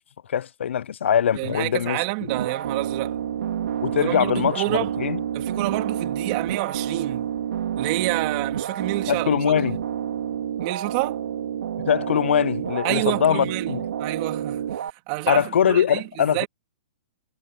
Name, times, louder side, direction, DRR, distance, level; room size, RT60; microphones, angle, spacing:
voice 1, 0.3-2.0 3.8-4.6 5.0-5.2 9.1-9.8 11.8-13.8 15.3-16.5, left 8 dB, 85° left, 0.4 m, -22 dB
voice 2, 1.3-3.2 4.0-4.9 5.3-7.3 7.8-9.4 10.6-11.2 12.8-16.5, right 25 dB, 40° right, 2.8 m, -28 dB
sound 1, 2.3-14.9, right 9 dB, 75° right, 2.6 m, -29 dB
hypercardioid pair, 140°, 6 cm